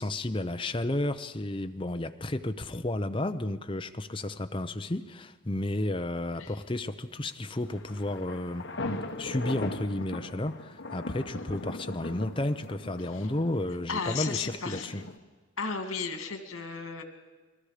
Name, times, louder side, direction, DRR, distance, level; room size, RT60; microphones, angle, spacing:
voice 1, 0.0-8.7 9.2-15.0, left 1 dB, 25° left, 7 dB, 0.7 m, -32 dB
sound 1, 7.6-15.2, left 2 dB, 60° left, 1.4 m, -39 dB
voice 2, 11.3-11.7 13.1-13.3 13.9-15.0 15.6-17.0, left 5 dB, 85° left, 7 dB, 2.4 m, -35 dB
29.5 x 21.0 x 5.0 m, 1.3 s
head